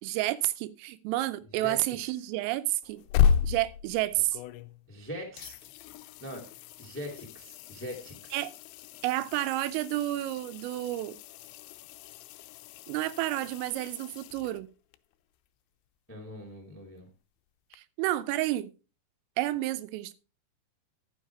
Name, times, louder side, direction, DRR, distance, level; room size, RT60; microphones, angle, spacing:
voice 1, 0.0-3.0 3.4-4.4 8.3-8.5 9.0-11.2 12.9-14.7 17.7-18.7 19.4-20.1, right 16 dB, 85° right, 3.3 m, -30 dB
voice 2, 1.6-1.9 4.9-5.7 6.2-8.4 16.1-17.1, equal, 15° left, 0.4 m, -42 dB
sound 1, 2.8-5.0 5.4-15.0 17.7-17.8, left 8 dB, 85° left, 2.5 m, -33 dB
12.0 x 7.3 x 4.7 m
omnidirectional pair, 5.8 m